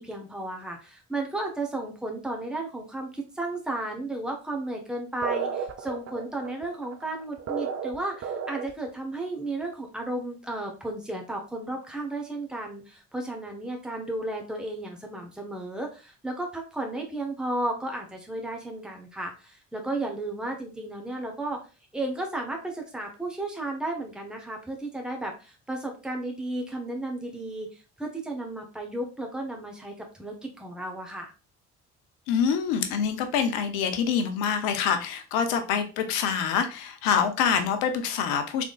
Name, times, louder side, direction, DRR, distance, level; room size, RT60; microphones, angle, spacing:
voice 1, 0.0-21.6 21.9-31.3, right 2 dB, ahead, 1 dB, 1.3 m, -34 dB
sound 1, 5.2-8.9, right 6 dB, 50° right, 0.7 m, -33 dB
voice 2, 32.3-38.6, left 7 dB, 85° left, 7 dB, 0.7 m, -26 dB
3.6 x 3.6 x 2.4 m, 0.32 s
hypercardioid pair, 50°, 34 cm